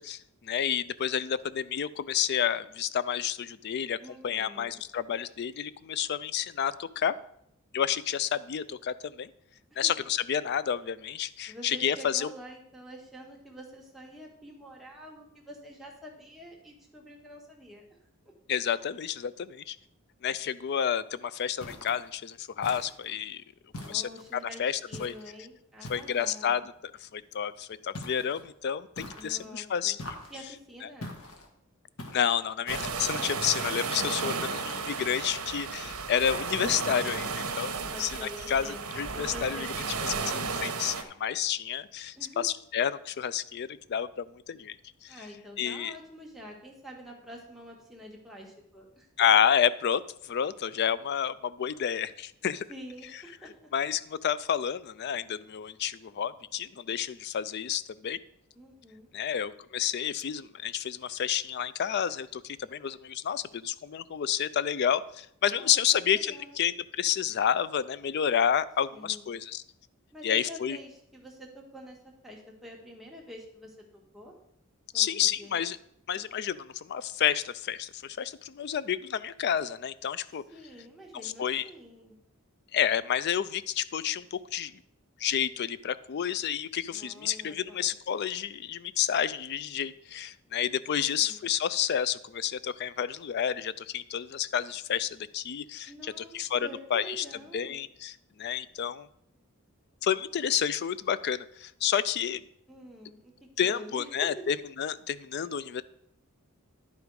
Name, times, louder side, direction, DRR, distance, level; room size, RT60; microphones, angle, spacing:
voice 1, 0.0-4.0 4.2-7.1 7.7-9.3 9.8-12.3 18.5-19.8 20.2-23.4 23.9-24.1 24.6-25.1 25.9-30.0 32.0-39.7 40.0-44.8 45.0-45.2 45.6-46.0 49.2-52.7 53.7-58.2 59.1-69.6 70.2-70.8 74.9-75.8 76.1-80.4 81.2-81.7 82.7-84.7 85.2-97.3 97.5-99.1 100.0-102.4 103.6-105.8, left 9 dB, 50° left, 16 dB, 0.4 m, -30 dB
voice 2, 4.0-4.8 9.7-10.0 11.5-17.8 23.7-26.7 29.1-30.0 30.3-31.1 37.8-38.8 39.1-40.5 42.1-42.4 45.1-49.1 52.7-53.7 58.5-59.1 65.5-65.8 66.1-66.6 68.9-69.3 70.1-73.7 74.1-74.3 74.9-75.6 80.5-82.1 86.9-87.9 91.0-91.5 95.9-97.8 102.7-103.3 103.6-104.4, equal, ahead, -2 dB, 1.5 m, -47 dB
sound 1, 21.6-22.1 22.6-23.2 23.7-24.4 24.9-25.3 25.8-26.4 27.9-28.4 29.0-29.5 30.0-30.5 31.0-31.5 32.0-32.5, left 1 dB, 70° left, 1.4 m, -43 dB
sound 2, 32.7-41.0, right 5 dB, 75° right, 0.9 m, -33 dB
10.5 x 5.1 x 4.7 m, 0.73 s
head